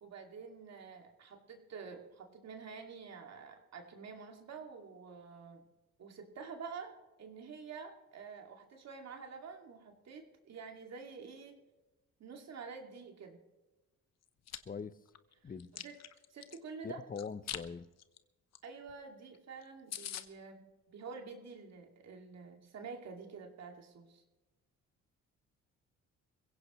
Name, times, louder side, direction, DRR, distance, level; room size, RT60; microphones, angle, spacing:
voice 1, 0.0-5.6 6.0-11.6 12.2-13.4 15.4-16.0 16.3-17.0 18.6-24.2, right 5 dB, 60° right, 3 dB, 2.4 m, -48 dB
Chewing mastication, 14.2-14.6 15.1-16.6 17.2-17.7 18.0-18.2 18.5-18.6 18.9-19.0 19.3-19.4 19.6-19.7 19.9-20.3, left 10 dB, 60° left, 1.0 m, -43 dB
voice 2, 14.6-15.0 15.4-15.7 16.8-17.9, left 6 dB, 30° left, 15 dB, 0.7 m, -42 dB
22.0 x 16.0 x 3.1 m, 1.1 s
cardioid pair, 90°, 30 cm